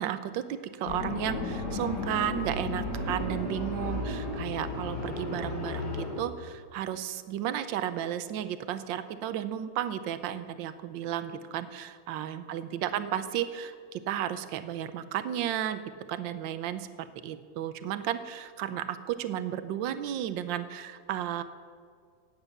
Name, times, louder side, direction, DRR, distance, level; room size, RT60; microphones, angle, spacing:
voice 1, 0.0-21.4, right 10 dB, 75° right, 12 dB, 1.4 m, -33 dB
sound 1, 0.8-6.2, left 2 dB, 55° left, 2.7 m, -34 dB
16.0 x 8.9 x 6.7 m, 2.1 s
omnidirectional pair, 2.1 m